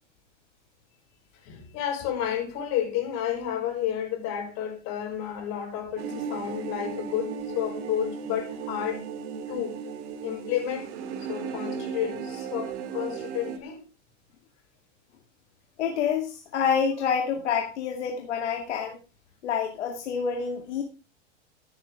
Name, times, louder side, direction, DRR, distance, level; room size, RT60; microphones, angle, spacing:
voice 1, 1.3-9.0 9.5-9.9 10.2-10.9 11.2-13.8 17.3-17.4, left 10 dB, 50° left, 5.4 m, -31 dB
sound 1, 6.0-13.6, right 6 dB, 60° right, 2.3 m, -36 dB
voice 2, 15.8-19.0 19.4-20.8, left 7 dB, 80° left, 2.2 m, -27 dB
15.0 x 8.6 x 3.5 m
hypercardioid pair, 115°, 35 cm